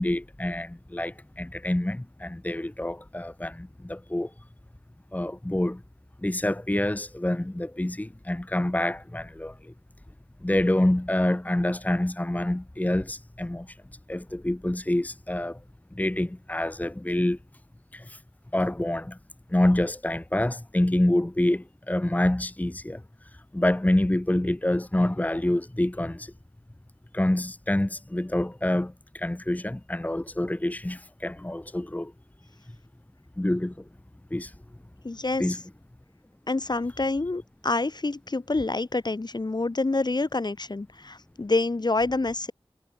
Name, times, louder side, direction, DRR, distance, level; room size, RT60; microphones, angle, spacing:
voice 1, 0.0-4.3 5.1-5.8 6.2-9.7 10.4-13.7 14.1-15.6 15.9-17.4 17.9-18.2 18.5-19.2 19.5-23.0 23.5-26.3 27.1-32.1 33.4-33.7 34.3-34.5 35.4-35.6, left 1 dB, 15° left, 1.5 m, -27 dB
voice 2, 35.0-35.6 36.5-42.5, left 3 dB, 45° left, 2.5 m, -27 dB
wide cardioid pair, 70°, 10 cm